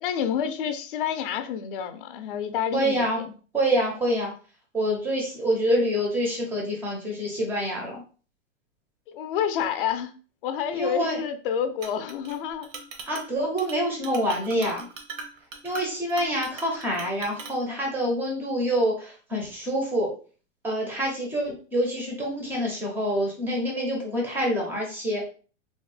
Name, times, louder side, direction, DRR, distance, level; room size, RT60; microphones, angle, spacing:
voice 1, 0.0-3.3 9.1-10.1 10.4-12.7, left 8 dB, 45° left, 9 dB, 0.5 m, -29 dB
voice 2, 2.7-3.2 3.5-4.3 4.7-8.0 10.7-11.2 13.1-14.9 15.6-20.1 20.6-25.2, equal, 5° right, 0 dB, 0.4 m, -26 dB
Chink clink, 11.8-12.4 12.6-13.3 13.6-13.8 14.0-17.6, right 4 dB, 85° right, 0.9 m, -40 dB
3.4 x 2.1 x 3.2 m, 0.38 s
supercardioid pair, 155°, 38 cm